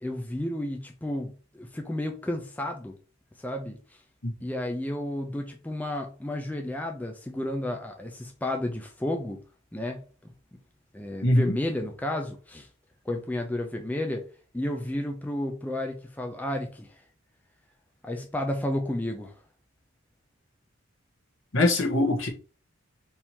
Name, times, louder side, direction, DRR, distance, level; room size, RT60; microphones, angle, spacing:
voice 1, 0.0-3.0 3.4-4.0 4.4-9.4 9.7-10.0 10.9-12.7 13.1-14.3 14.5-17.0 18.0-19.3, left 1 dB, 10° left, 0.4 m, -32 dB
voice 2, 11.2-11.5 21.5-22.3, left 1 dB, 65° left, 1.2 m, -22 dB
3.6 x 2.8 x 4.4 m
head